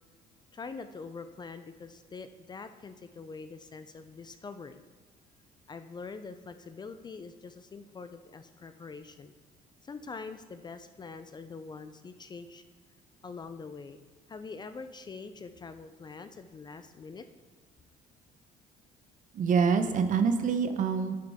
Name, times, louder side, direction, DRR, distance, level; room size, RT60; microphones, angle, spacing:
voice 1, 0.5-4.8 5.7-9.3 9.8-12.6 13.2-14.0 14.3-17.3, left 4 dB, 25° left, 10 dB, 0.4 m, -44 dB
voice 2, 19.3-21.1, right 6 dB, 50° right, 9 dB, 0.7 m, -26 dB
10.5 x 6.6 x 3.6 m, 1.4 s
cardioid pair, 110°, 17 cm